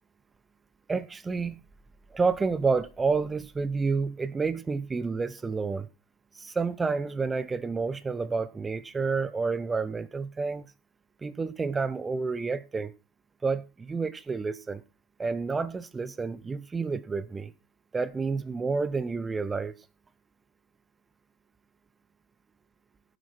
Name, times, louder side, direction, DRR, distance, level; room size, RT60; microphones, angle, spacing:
voice 1, 0.9-1.6 2.1-5.9 6.3-10.7 11.2-12.9 13.4-14.8 15.2-17.5 17.9-19.7, right 4 dB, 15° right, 0.8 m, -29 dB
16.0 x 9.6 x 4.4 m
figure-of-eight pair, 90°, 0 cm